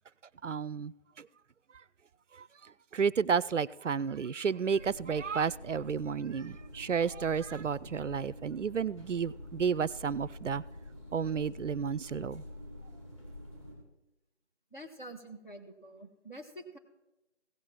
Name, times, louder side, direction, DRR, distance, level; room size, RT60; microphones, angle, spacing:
voice 1, 0.4-1.3 1.7-1.8 2.3-10.6 11.1-12.4, right 6 dB, 80° right, 0.5 m, -32 dB
sound 1, 4.7-13.7, left 1 dB, 25° left, 2.6 m, -48 dB
voice 2, 14.7-16.8, right 1 dB, 40° left, 1.5 m, -47 dB
16.5 x 6.4 x 4.5 m
figure-of-eight pair, 180°, 36 cm